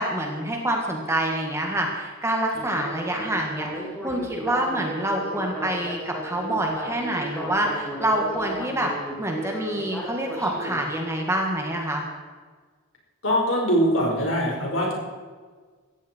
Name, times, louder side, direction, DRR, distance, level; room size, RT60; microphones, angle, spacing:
voice 1, 0.0-8.9 9.2-12.0, right 1 dB, 10° right, 1 dB, 1.9 m, -26 dB
Speech synthesizer, 2.5-10.8, equal, 5° left, 3.7 m, -35 dB
voice 2, 13.2-14.9, equal, 60° left, -1 dB, 5.0 m, -22 dB
18.5 x 14.5 x 4.6 m, 1.5 s
head